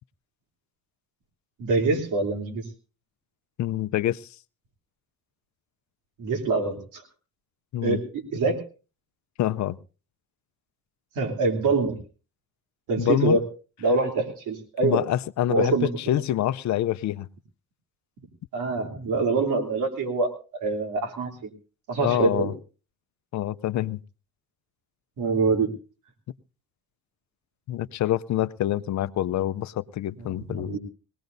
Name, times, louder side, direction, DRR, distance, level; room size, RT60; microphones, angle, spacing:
voice 1, 1.6-2.7 6.2-7.0 7.8-8.6 11.1-12.0 12.9-13.4 13.8-15.0 15.5-15.9 18.5-21.5 21.9-22.5 25.2-25.7 30.5-30.8, right 3 dB, 85° right, 3 dB, 3.1 m, -25 dB
voice 2, 3.6-4.3 7.7-8.0 9.4-9.8 13.0-13.4 14.8-17.3 22.0-22.5 23.3-24.0 27.7-30.8, left 13 dB, 65° left, 15 dB, 0.6 m, -26 dB
21.5 x 18.5 x 2.6 m, 0.35 s
cardioid pair, 90°, 30 cm